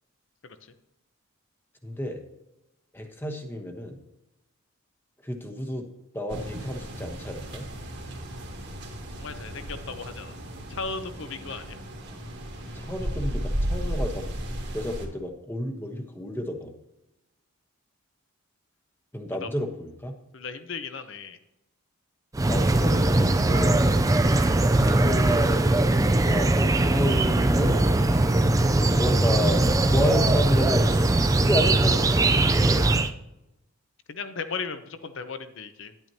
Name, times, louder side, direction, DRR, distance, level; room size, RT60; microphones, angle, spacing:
voice 1, 1.8-2.2 2.9-4.0 5.2-5.9 6.1-7.6 12.7-14.3 14.7-16.7 19.1-20.1 22.4-24.0 24.8-25.5 26.1-27.8 28.6-32.9, equal, 10° left, 4 dB, 1.0 m, -31 dB
sound 1, 6.3-15.1, equal, 50° right, 1.9 m, -34 dB
voice 2, 9.1-10.3 10.7-11.8 19.4-19.5 20.3-21.4 34.1-35.9, left 4 dB, 55° left, 10 dB, 0.8 m, -36 dB
sound 2, 22.3-33.1, right 2 dB, 15° right, 0.4 m, -21 dB
10.5 x 9.1 x 2.8 m, 0.91 s
head